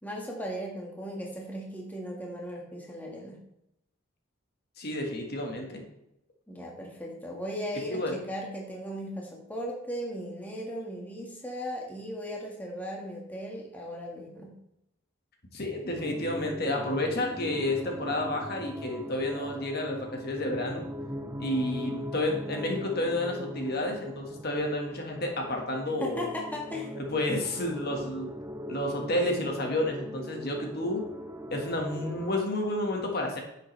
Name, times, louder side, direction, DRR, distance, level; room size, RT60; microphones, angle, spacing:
voice 1, 0.0-3.4 6.5-14.5 26.0-26.9, equal, 10° left, -2 dB, 1.7 m, -37 dB
voice 2, 4.8-5.8 7.9-8.2 15.5-20.9 21.4-26.3 26.9-28.3 28.7-31.1 31.5-33.4, left 1 dB, 50° left, 2 dB, 1.7 m, -30 dB
sound 1, 16.0-32.4, equal, 15° right, 0.5 m, -40 dB
10.0 x 7.8 x 3.3 m, 0.83 s
head